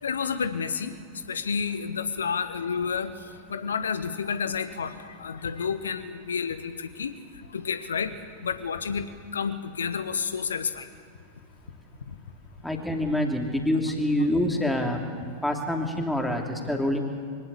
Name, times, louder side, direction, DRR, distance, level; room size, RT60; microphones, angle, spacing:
voice 1, 0.0-0.9 1.3-3.1 3.5-7.1 7.5-8.1 8.4-9.1 9.3-10.9 12.1-12.2, left 6 dB, 70° left, 11 dB, 1.4 m, -30 dB
voice 2, 12.6-15.0 15.4-17.0, left 1 dB, 5° left, 2 dB, 2.9 m, -26 dB
23.5 x 17.5 x 8.4 m, 2.3 s
figure-of-eight pair, 90°, 0 cm